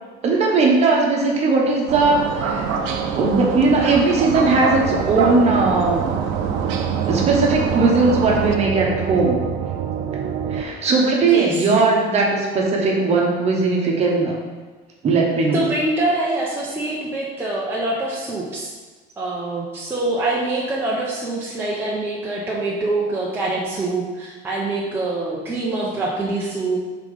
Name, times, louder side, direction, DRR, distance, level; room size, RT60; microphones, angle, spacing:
voice 1, 0.2-2.6 3.1-6.0 7.1-9.4 10.5-14.3 15.0-15.6, right 3 dB, 35° right, -1 dB, 1.1 m, -18 dB
sound 1, 1.9-8.5, right 5 dB, 80° right, 0.7 m, -25 dB
sound 2, 4.1-10.6, right 9 dB, 50° right, 0.4 m, -27 dB
voice 2, 11.2-11.6 15.5-18.7 19.2-26.8, right 2 dB, 10° right, -6 dB, 0.7 m, -24 dB
5.6 x 3.8 x 5.0 m, 1.3 s
cardioid pair, 170°, 20 cm